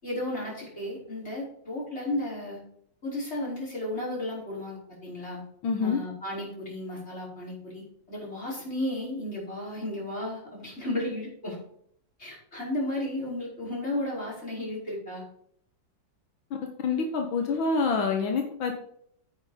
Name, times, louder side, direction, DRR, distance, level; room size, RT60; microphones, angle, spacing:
voice 1, 0.0-2.6 3.0-5.4 5.8-11.6 12.2-15.2, left 1 dB, 30° left, -5 dB, 5.6 m, -34 dB
voice 2, 5.6-6.0 16.8-18.8, left 4 dB, 80° left, 3 dB, 1.9 m, -26 dB
9.3 x 8.0 x 5.0 m, 0.67 s
omnidirectional pair, 2.1 m